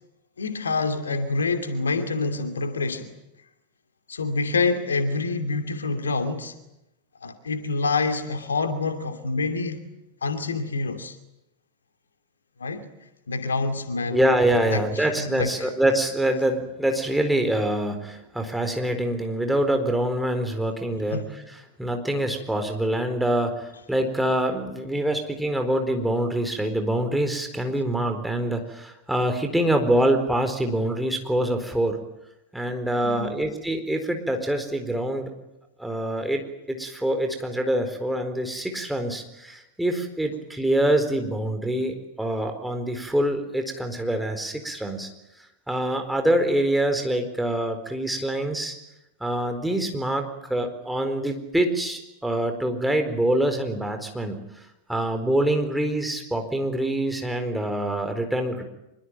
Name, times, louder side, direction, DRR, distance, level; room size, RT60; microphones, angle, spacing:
voice 1, 0.4-3.1 4.1-6.5 7.2-9.9 10.2-11.2 12.6-12.9 13.3-14.3 14.6-15.7 21.1-21.4 33.0-33.5, left 3 dB, 70° left, 2.6 m, -27 dB
voice 2, 14.1-21.2 21.8-32.0 32.5-35.3 35.8-45.1 45.7-48.8 49.2-54.4 54.9-58.6, right 1 dB, 5° right, 4.3 m, -25 dB
25.5 x 23.0 x 9.1 m
figure-of-eight pair, 90°, 0 cm